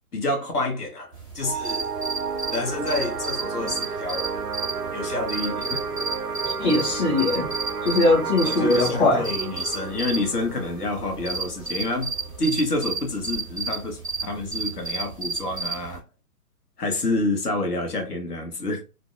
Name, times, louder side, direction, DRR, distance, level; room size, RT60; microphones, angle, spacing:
voice 1, 0.1-1.9 2.5-4.3 4.9-5.8 8.4-12.1 12.4-16.0 16.8-18.8, left 2 dB, 80° left, 1.1 m, -28 dB
sound 1, 1.1-16.0, right 4 dB, 5° right, 0.4 m, -33 dB
sound 2, 1.4-12.5, right 5 dB, 90° right, 0.5 m, -32 dB
voice 2, 6.6-7.5 7.8-9.2, left 2 dB, 35° left, 0.8 m, -21 dB
2.5 x 2.0 x 2.6 m
figure-of-eight pair, 125°, 45 cm